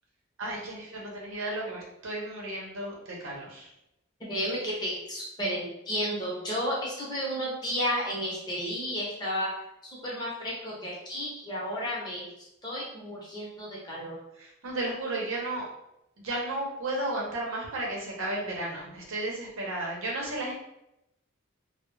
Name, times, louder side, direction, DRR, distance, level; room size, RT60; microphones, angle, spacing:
voice 1, 0.4-3.7 14.4-15.7 16.2-20.5, right 1 dB, 80° right, -2 dB, 0.7 m, -33 dB
voice 2, 4.3-9.5 10.0-12.3 12.6-14.2, equal, 20° left, -5 dB, 0.7 m, -32 dB
2.3 x 2.0 x 3.0 m, 0.83 s
head